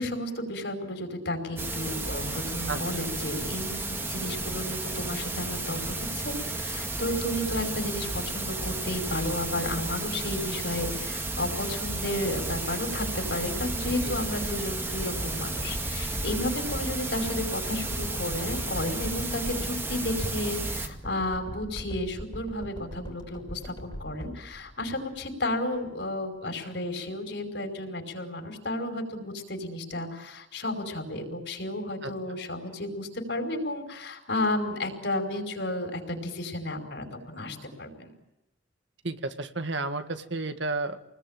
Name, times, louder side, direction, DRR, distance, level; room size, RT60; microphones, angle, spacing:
voice 1, 0.0-38.1, left 1 dB, 65° left, 5 dB, 5.3 m, -32 dB
sound 1, 1.6-20.9, right 2 dB, 10° right, 2.1 m, -33 dB
sound 2, 13.3-25.5 26.0-26.1, equal, 25° left, 3.3 m, -40 dB
voice 2, 39.0-41.0, right 3 dB, 70° right, 8 dB, 1.9 m, -32 dB
29.0 x 20.5 x 9.1 m, 0.91 s
head